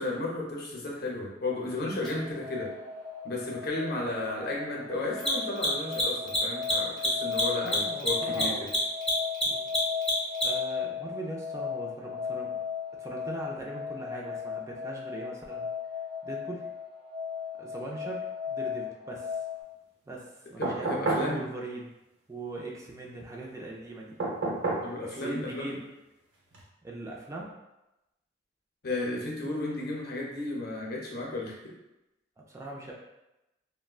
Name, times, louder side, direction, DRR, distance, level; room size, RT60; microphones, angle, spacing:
voice 1, 0.0-2.7 3.2-8.7 20.6-21.4 24.8-25.8 28.8-31.5, left 2 dB, 55° left, -2 dB, 0.7 m, -33 dB
sound 1, 1.5-19.6, left 7 dB, 50° right, 1.0 m, -36 dB
Mechanisms, 2.0-2.1 5.1-10.7, left 1 dB, ahead, 0.8 m, -28 dB
voice 2, 7.6-8.6 9.4-9.7 10.4-12.6 13.0-15.7 16.2-16.7 17.6-18.2 18.5-19.4 20.1-21.9 22.3-24.2 25.0-25.8 26.8-27.5 32.5-32.9, right 2 dB, 15° right, -2 dB, 0.3 m, -40 dB
sound 2, 20.6-21.3 24.2-24.9 26.5-26.6, right 2 dB, 85° right, 0.8 m, -29 dB
3.5 x 2.1 x 2.3 m, 0.95 s
head